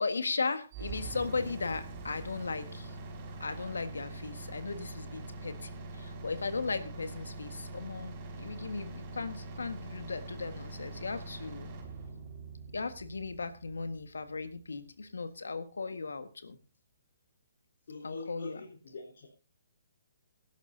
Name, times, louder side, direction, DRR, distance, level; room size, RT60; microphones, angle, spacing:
voice 1, 0.0-3.0 3.4-11.7 12.7-16.6 18.0-18.6, left 4 dB, 85° left, 10 dB, 1.6 m, -37 dB
sound 1, 0.7-14.7, right 2 dB, 30° right, 5.3 m, -44 dB
voice 2, 17.9-19.3, left 3 dB, 65° left, -1 dB, 3.9 m, -44 dB
18.0 x 11.5 x 2.7 m, 0.34 s
hypercardioid pair, 145°, 0 cm